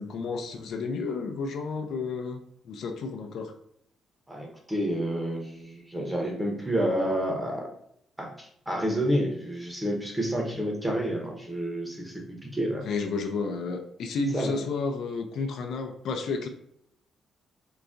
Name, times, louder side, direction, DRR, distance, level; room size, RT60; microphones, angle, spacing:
voice 1, 0.0-3.5 12.9-16.5, left 4 dB, 75° left, 4 dB, 0.4 m, -31 dB
voice 2, 4.3-7.7 8.2-12.2 12.5-12.9 14.3-14.5, equal, 10° right, 0 dB, 0.9 m, -29 dB
3.9 x 2.2 x 2.5 m, 0.72 s
cardioid pair, 90°, 0 cm